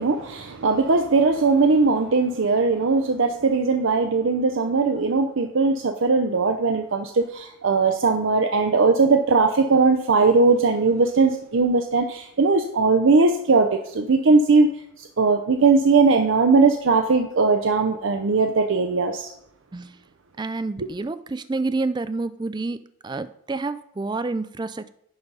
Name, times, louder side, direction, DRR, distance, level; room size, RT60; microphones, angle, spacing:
voice 1, 0.0-14.7 15.0-19.3 20.8-20.9, right 4 dB, 65° right, 5 dB, 0.6 m, -19 dB
voice 2, 20.4-24.9, right 3 dB, 20° right, 13 dB, 0.3 m, -29 dB
10.5 x 3.9 x 5.4 m, 0.75 s
head